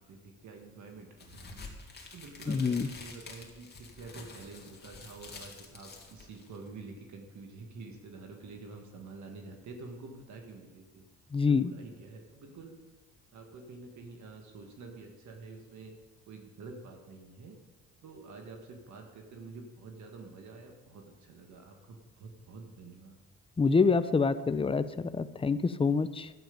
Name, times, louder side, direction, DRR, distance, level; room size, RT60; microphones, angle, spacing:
voice 1, 0.0-1.6 2.1-11.1 11.5-12.8 13.3-15.9 16.3-17.5 18.0-23.2, right 3 dB, 70° right, 3 dB, 1.8 m, -48 dB
sound 1, 1.2-6.7, left 3 dB, 35° left, 2.2 m, -48 dB
voice 2, 2.5-2.9 11.3-11.7 23.6-26.3, left 4 dB, 20° left, 12 dB, 0.6 m, -26 dB
12.0 x 9.1 x 5.3 m, 1.2 s
cardioid pair, 90°, 30 cm